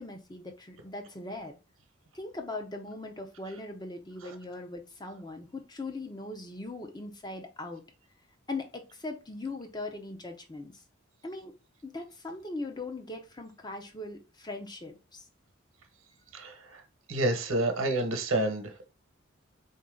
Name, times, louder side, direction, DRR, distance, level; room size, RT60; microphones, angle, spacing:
voice 1, 0.0-1.6 2.1-7.8 8.5-10.7 11.2-11.5 11.8-15.2, left 2 dB, 20° left, 0.7 m, -40 dB
voice 2, 16.3-16.8 17.1-18.9, right 1 dB, 85° right, 1.0 m, -29 dB
4.1 x 2.7 x 3.7 m
head